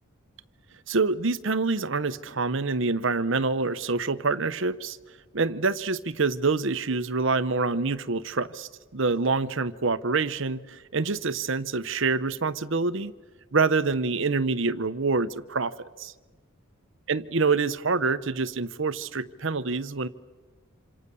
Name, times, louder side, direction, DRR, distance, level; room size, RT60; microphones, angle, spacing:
voice 1, 0.9-5.0 5.3-13.1 13.5-16.1 17.1-20.1, right 4 dB, 60° right, 13 dB, 0.9 m, -26 dB
27.0 x 27.0 x 6.9 m, 1.3 s
head